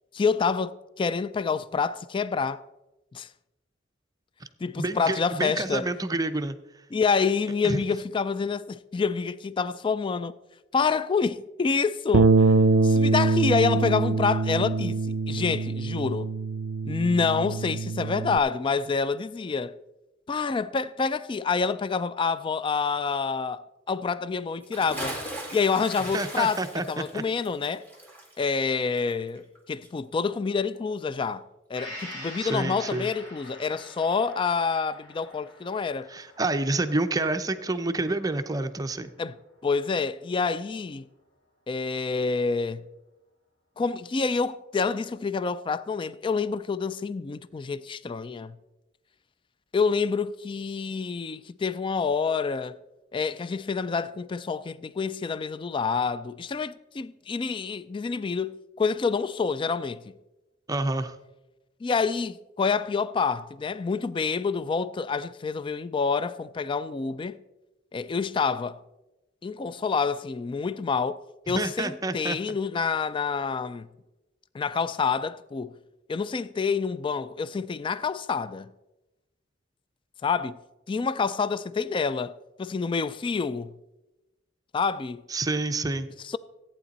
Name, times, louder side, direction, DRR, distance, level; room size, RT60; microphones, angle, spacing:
voice 1, 0.1-2.6 3.1-3.3 4.6-5.9 6.9-10.4 10.7-12.5 12.8-16.3 16.8-19.8 20.3-25.2 25.5-27.8 28.4-36.1 39.2-39.4 39.6-41.0 41.7-42.8 43.8-48.6 49.7-52.8 53.1-60.0 61.8-67.4 67.9-68.8 69.4-73.9 74.5-75.7 76.1-78.7 80.2-80.6 80.9-83.7 84.7-85.2 86.2-86.4, left 5 dB, 25° left, 0.3 m, -27 dB
voice 2, 4.8-6.6 7.6-7.8 26.1-27.2 32.4-33.1 36.1-39.1 60.7-61.2 71.5-72.4 85.3-86.1, right 2 dB, 20° right, 0.6 m, -28 dB
Bass guitar, 12.1-18.4, right 3 dB, 85° right, 0.5 m, -23 dB
Bathtub (filling or washing) / Splash splatter, 24.6-29.6 29.8-29.9, right 1 dB, 10° left, 1.8 m, -39 dB
Gong, 31.7-39.4 39.8-39.9, left 1 dB, 90° left, 4.7 m, -46 dB
14.5 x 8.8 x 4.1 m
head